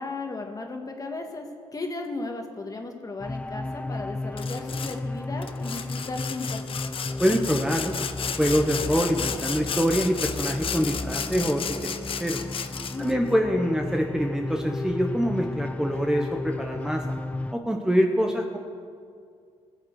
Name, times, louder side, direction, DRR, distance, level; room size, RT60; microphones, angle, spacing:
voice 1, 0.0-1.5 1.7-6.6 12.9-13.2, left 3 dB, 30° left, 3 dB, 1.7 m, -35 dB
sound 1, 3.2-17.5, left 2 dB, 10° left, 0.3 m, -34 dB
Sawing, 4.4-5.0 5.4-13.1, left 7 dB, 50° left, 0.7 m, -33 dB
voice 2, 7.2-12.4 13.0-17.0 17.5-18.6, equal, 5° right, 3 dB, 0.9 m, -25 dB
19.5 x 7.4 x 4.7 m, 2.2 s
cardioid pair, 85°, 12 cm